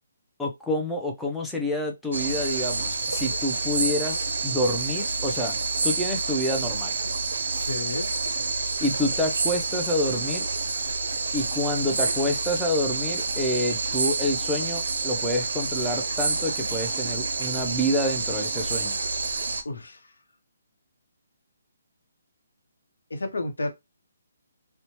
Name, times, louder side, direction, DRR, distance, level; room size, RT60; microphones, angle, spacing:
voice 1, 0.4-5.6 5.8-6.9 8.6-10.5 11.3-19.0, left 1 dB, 5° left, 0.5 m, -28 dB
sound 1, 2.1-19.6, right 3 dB, 75° right, 0.5 m, -28 dB
voice 2, 7.6-8.1 19.6-20.1 23.1-23.7, left 2 dB, 85° left, 0.8 m, -31 dB
2.9 x 2.1 x 2.8 m
hypercardioid pair, 155°, 0 cm